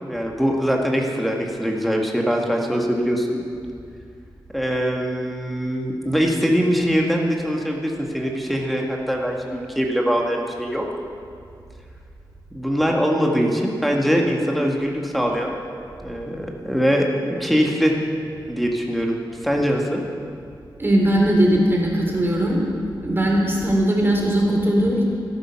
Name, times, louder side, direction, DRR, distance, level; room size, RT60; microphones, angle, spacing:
voice 1, 0.0-3.4 4.5-10.8 12.5-15.6 16.0-17.1 17.4-17.9 18.5-19.2 19.4-20.0, equal, ahead, -1 dB, 1.9 m, -22 dB
voice 2, 20.8-22.7 23.0-25.1, right 1 dB, 25° right, -2 dB, 3.5 m, -19 dB
14.5 x 11.5 x 6.0 m, 2.4 s
wide cardioid pair, 95°, 8 cm